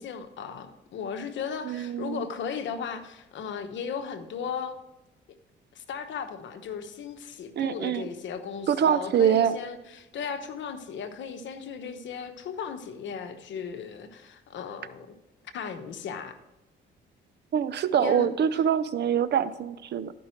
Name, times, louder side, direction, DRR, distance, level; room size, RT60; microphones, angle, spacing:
voice 1, 0.0-4.7 5.7-15.1 15.5-16.4 18.0-18.3, left 6 dB, 70° left, 8 dB, 1.0 m, -36 dB
voice 2, 1.6-2.3 7.6-8.1 8.7-9.5 17.5-20.1, right 8 dB, 60° right, 14 dB, 0.6 m, -24 dB
12.5 x 5.4 x 4.5 m, 0.99 s
cardioid pair, 90°, 20 cm